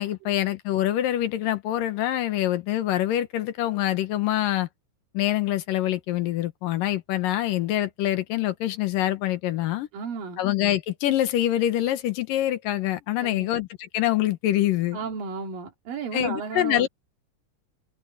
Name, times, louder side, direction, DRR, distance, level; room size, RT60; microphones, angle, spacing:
voice 1, 0.0-4.7 5.1-9.9 10.4-15.0 16.1-16.9, left 13 dB, 80° left, 2.9 m, -25 dB
voice 2, 9.9-10.4 13.2-13.5 14.9-16.9, right 5 dB, 85° right, 4.5 m, -34 dB
omnidirectional pair, 3.9 m